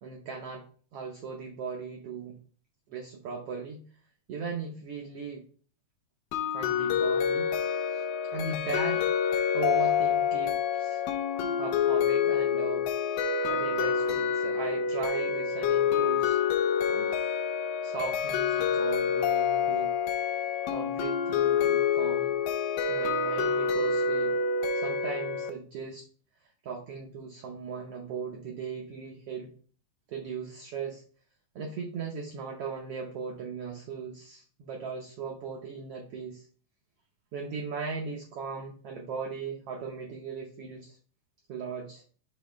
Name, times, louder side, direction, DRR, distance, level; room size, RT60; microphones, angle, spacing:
voice 1, 0.0-0.7 0.9-2.4 2.9-3.8 4.3-5.5 6.5-7.5 7.9-9.1 9.5-11.0 11.4-16.4 16.9-17.1 17.8-19.9 20.7-22.4 22.9-24.3 24.7-26.1 26.6-29.5 30.1-31.0 31.5-36.5 37.3-41.0 41.5-42.0, right 5 dB, 85° right, 2 dB, 1.3 m, -38 dB
sound 1, 6.3-25.5, left 6 dB, 80° left, 1.9 m, -27 dB
6.4 x 3.0 x 4.9 m, 0.43 s
omnidirectional pair, 3.8 m